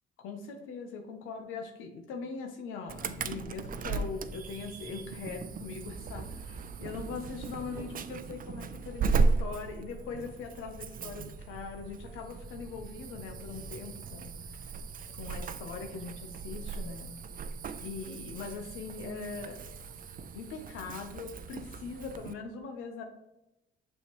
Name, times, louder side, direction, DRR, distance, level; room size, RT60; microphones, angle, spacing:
voice 1, 0.2-14.7 15.1-17.1 17.8-19.6 20.3-23.0, left 5 dB, 90° left, 4 dB, 0.8 m, -41 dB
Insect / Alarm, 2.9-22.3, right 4 dB, 45° right, 0.5 m, -36 dB
6.9 x 5.7 x 3.1 m, 0.92 s
cardioid pair, 90°, 20 cm